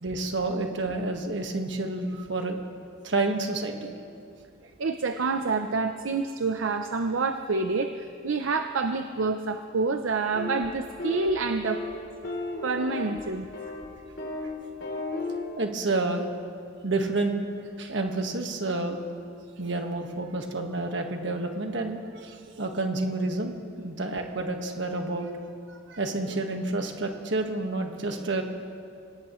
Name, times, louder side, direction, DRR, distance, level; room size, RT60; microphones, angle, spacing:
voice 1, 0.0-2.6 3.0-3.9 15.6-16.2 16.8-19.0 19.6-23.5 23.8-25.3 25.7-28.4, right 2 dB, 60° right, 4 dB, 1.5 m, -29 dB
voice 2, 4.8-11.8 12.6-13.5, right 4 dB, 80° right, 7 dB, 0.6 m, -27 dB
sound 1, 10.3-10.7 11.0-11.3 11.6-11.9 12.2-13.2 13.5-13.8 14.2-14.5 14.8-15.4, left 2 dB, 65° left, 3.2 m, -33 dB
26.0 x 17.5 x 3.1 m, 2.4 s
head